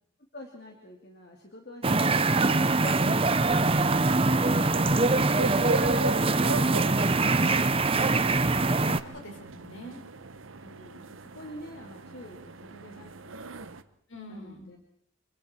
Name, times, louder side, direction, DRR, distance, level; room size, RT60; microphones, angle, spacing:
voice 1, 0.3-3.1 9.1-9.2 10.5-13.7 14.3-14.8, left 1 dB, 50° left, 1 dB, 2.7 m, -47 dB
sound 1, 1.8-9.0, right 3 dB, 25° right, 0.8 m, -23 dB
sound 2, 3.5-13.8, right 3 dB, 75° right, 1.1 m, -38 dB
voice 2, 7.3-10.0 14.1-14.6, equal, 65° left, 3 dB, 4.9 m, -44 dB
27.0 x 25.5 x 4.5 m, 0.66 s
head